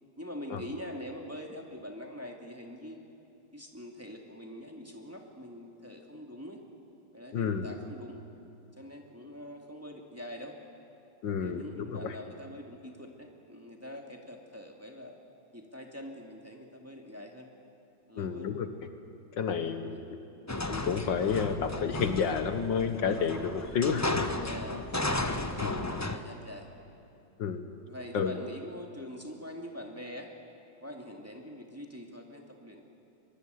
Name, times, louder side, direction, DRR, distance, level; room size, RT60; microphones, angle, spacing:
voice 1, 0.2-3.0 3.5-6.6 7.1-8.2 8.8-10.5 11.4-15.2 15.5-17.5 18.1-18.5 19.6-20.0 24.4-25.4 25.8-26.7 27.9-30.3 30.8-32.8, left 1 dB, 5° right, 1 dB, 2.3 m, -44 dB
voice 2, 7.3-7.7 11.2-12.2 18.2-18.7 19.4-20.2 20.7-24.3 25.6-25.8 27.4-27.6 28.1-28.3, left 6 dB, 70° left, 8 dB, 1.8 m, -30 dB
sound 1, 20.5-26.2, left 2 dB, 20° left, 0.4 m, -34 dB
23.0 x 23.0 x 9.4 m, 2.8 s
omnidirectional pair, 2.2 m